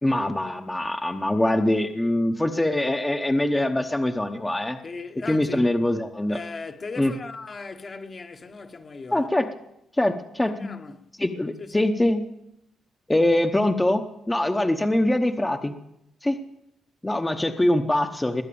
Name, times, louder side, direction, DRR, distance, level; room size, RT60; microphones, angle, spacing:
voice 1, 0.0-4.8 5.3-6.4 7.0-7.1 9.1-9.5 9.9-10.7 11.2-12.2 13.1-15.7 16.2-16.4 17.0-18.4, left 1 dB, 10° left, 1.0 m, -23 dB
voice 2, 4.8-5.7 6.3-9.3 10.5-11.1 11.6-11.9 14.6-14.8, left 4 dB, 35° left, 1.3 m, -38 dB
21.0 x 8.3 x 7.0 m
cardioid pair, 95°, 0 cm